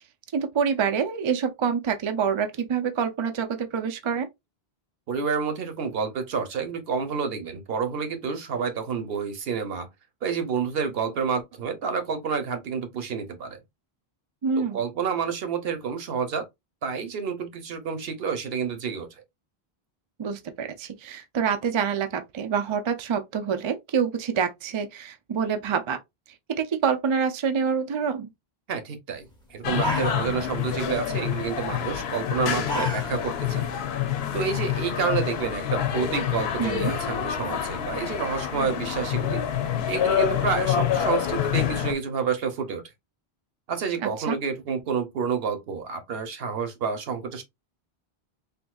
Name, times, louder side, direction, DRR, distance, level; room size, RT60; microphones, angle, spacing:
voice 1, 0.3-4.3 14.4-14.8 20.2-26.0 26.6-28.3 36.6-36.9 44.3-44.4, right 6 dB, 50° right, 0.3 m, -26 dB
voice 2, 5.1-9.9 10.2-13.6 14.6-16.5 16.8-19.2 28.7-33.7 34.3-39.4 39.9-42.8 43.7-47.4, right 6 dB, 70° right, 0.9 m, -29 dB
sound 1, 29.3-29.4 29.7-30.7 31.0-31.3 32.3-33.4 33.8-33.9 34.4-35.4, left 1 dB, 5° left, 0.6 m, -32 dB
sound 2, 29.6-41.9, left 9 dB, 80° left, 0.8 m, -27 dB
3.6 x 2.6 x 2.2 m
omnidirectional pair, 1.1 m